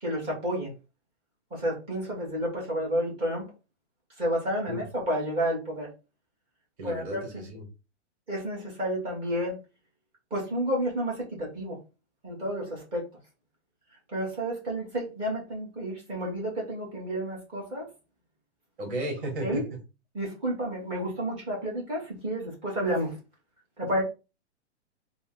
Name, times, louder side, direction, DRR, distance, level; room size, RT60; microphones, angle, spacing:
voice 1, 0.0-0.7 1.5-3.5 4.2-5.9 6.8-7.4 8.3-9.5 10.3-11.8 12.2-13.1 14.1-17.9 19.4-19.6 20.1-23.2 23.8-24.0, equal, 15° right, -4 dB, 1.5 m, -30 dB
voice 2, 6.8-7.7 18.8-19.6, right 1 dB, 45° right, 2 dB, 2.0 m, -34 dB
4.2 x 2.2 x 3.7 m, 0.28 s
hypercardioid pair, 170°, 35 cm